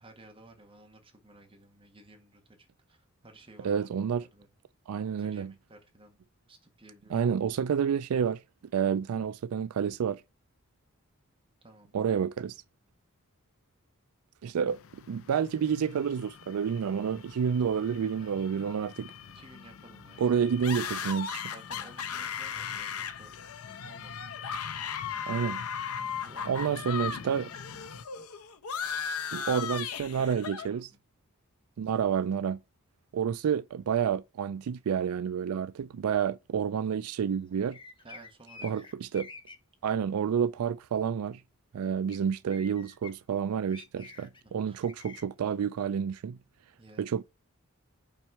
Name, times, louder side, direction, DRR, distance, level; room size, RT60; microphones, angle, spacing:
voice 1, 0.0-3.9 4.2-4.5 5.2-6.2 6.5-7.4 11.6-12.0 18.2-18.4 19.3-20.4 21.5-22.9 23.2-24.2 26.2-26.8 27.2-28.2 29.5-31.0 38.0-38.8 44.4-44.8 46.8-47.2, right 2 dB, 25° right, 1.5 m, -55 dB
voice 2, 3.6-4.3 4.9-5.5 7.1-8.4 8.7-10.2 11.9-12.6 14.4-19.1 20.2-21.4 25.3-25.6 26.5-27.5 29.3-30.9 31.8-32.6 33.1-37.8 38.6-39.3 39.8-41.4 41.7-46.4 47.0-47.2, right 7 dB, 90° right, 0.4 m, -29 dB
sound 1, 14.7-28.0, left 7 dB, 65° left, 0.5 m, -47 dB
sound 2, 20.6-27.2 27.5-30.7, left 7 dB, 85° left, 0.8 m, -36 dB
sound 3, 37.7-39.5 42.1-42.2 42.5-43.1 43.7-44.4 44.8-45.2, left 4 dB, 20° left, 1.0 m, -47 dB
5.9 x 4.4 x 4.6 m
head